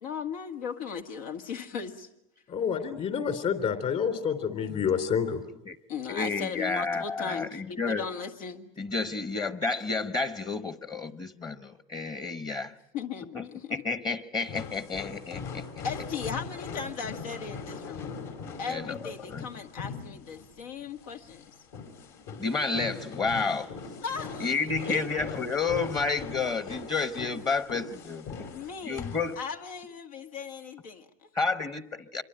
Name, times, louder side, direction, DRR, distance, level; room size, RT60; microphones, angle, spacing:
voice 1, 0.0-2.1 5.9-8.7 12.9-13.8 15.8-18.1 18.6-21.4 24.0-25.4 28.5-29.0 29.4-31.3, left 6 dB, 85° left, 5 dB, 1.9 m, -37 dB
voice 2, 2.5-5.4, left 7 dB, 45° left, 7 dB, 3.5 m, -28 dB
voice 3, 6.1-8.0 8.8-12.7 13.3-13.4 13.7-15.8 18.6-19.5 22.4-23.8 24.4-28.3 28.8-29.4 31.3-32.2, left 4 dB, 25° left, 11 dB, 1.1 m, -31 dB
sound 1, 14.4-29.3, left 5 dB, 70° left, 5.4 m, -40 dB
26.0 x 23.0 x 8.9 m, 0.82 s
supercardioid pair, 120°, 17 cm